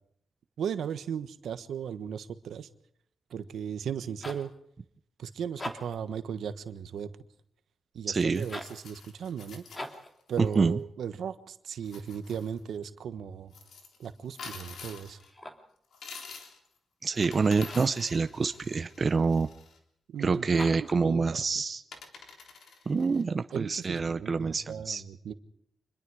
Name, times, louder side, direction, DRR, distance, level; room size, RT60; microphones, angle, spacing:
voice 1, 0.6-2.7 3.3-4.5 5.2-7.1 7.9-9.6 10.3-13.5 14.0-15.2 20.1-20.5 21.0-21.2 23.5-25.3, right 8 dB, 80° right, 10 dB, 1.3 m, -36 dB
sound 1, 4.2-4.5 5.5-6.1 8.4-8.8 9.7-10.2 15.2-15.8 17.6-18.0 20.5-21.0, left 1 dB, 20° left, 2.7 m, -41 dB
voice 2, 8.1-8.5 10.4-10.8 17.0-19.5 20.2-21.8 22.9-25.0, right 4 dB, 40° right, 10 dB, 0.7 m, -27 dB
sound 2, 8.3-10.6 11.8-12.6 13.5-15.3 15.9-16.7 17.1-19.8 21.3-21.4 21.9-23.2, left 5 dB, 75° left, 3.4 m, -48 dB
26.0 x 21.5 x 4.9 m, 0.72 s
cardioid pair, 105°, 0 cm